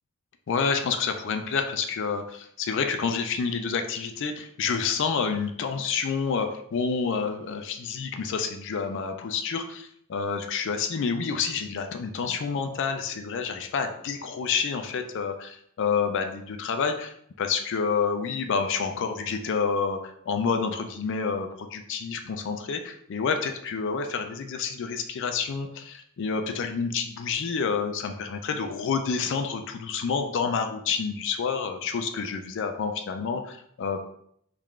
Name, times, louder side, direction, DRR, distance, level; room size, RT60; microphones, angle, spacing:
voice 1, 0.5-34.0, left 5 dB, 55° left, 6 dB, 0.4 m, -28 dB
3.6 x 2.4 x 3.2 m, 0.68 s
head